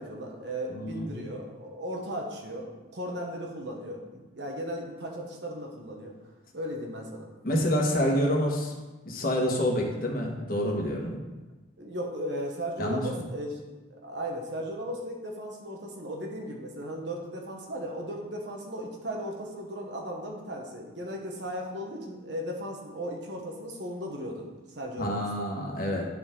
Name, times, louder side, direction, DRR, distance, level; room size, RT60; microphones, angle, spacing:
voice 1, 0.0-6.1 6.5-7.3 11.8-13.6 13.9-25.2, equal, 75° right, 1 dB, 1.3 m, -36 dB
voice 2, 0.7-1.1 7.4-8.7 9.0-11.2 12.8-13.0 25.0-26.1, equal, 50° left, -1 dB, 1.4 m, -27 dB
11.0 x 4.4 x 3.8 m, 1.2 s
head